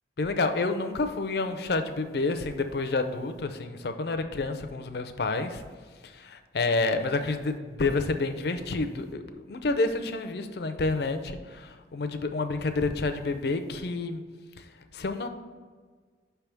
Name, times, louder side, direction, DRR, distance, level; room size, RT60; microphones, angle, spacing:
voice 1, 0.2-5.6 6.1-14.2 14.9-15.3, left 3 dB, 60° left, 8 dB, 0.5 m, -29 dB
5.7 x 3.4 x 5.8 m, 1.5 s
head